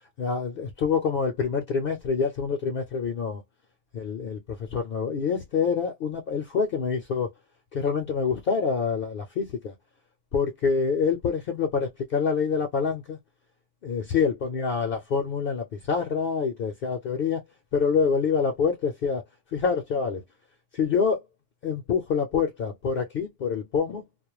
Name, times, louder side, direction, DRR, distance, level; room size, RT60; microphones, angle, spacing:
voice 1, 0.2-3.4 3.9-7.3 7.7-9.7 10.3-13.2 13.8-17.4 17.7-19.2 19.5-20.2 20.7-21.2 21.6-24.0, left 5 dB, 60° left, 0.7 m, -26 dB
2.3 x 2.1 x 3.0 m
omnidirectional pair, 1.2 m